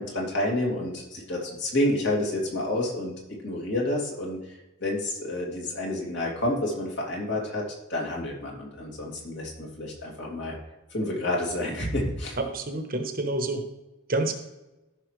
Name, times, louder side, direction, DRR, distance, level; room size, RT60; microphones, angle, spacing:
voice 1, 0.0-3.1 3.4-7.6 7.9-10.6 10.9-12.4, left 1 dB, 55° left, -2 dB, 2.6 m, -29 dB
voice 2, 12.4-13.6 14.1-14.3, right 2 dB, 40° right, 6 dB, 1.1 m, -28 dB
14.0 x 5.8 x 3.2 m, 1.0 s
head